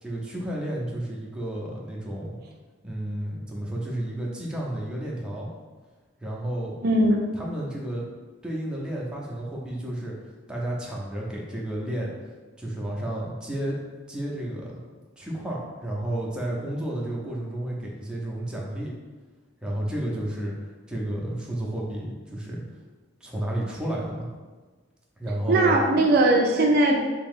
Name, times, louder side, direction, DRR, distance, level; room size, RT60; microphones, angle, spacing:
voice 1, 0.0-2.4 2.8-5.5 6.2-6.7 7.3-8.0 8.4-10.1 10.5-12.1 12.6-13.8 14.1-14.7 15.2-18.9 19.6-20.5 20.9-22.6 23.2-24.3 25.2-25.8, right 1 dB, 5° right, -4 dB, 0.6 m, -31 dB
voice 2, 6.8-7.2 25.5-27.1, right 2 dB, 50° right, 1 dB, 0.4 m, -19 dB
3.5 x 2.9 x 3.6 m, 1.4 s
head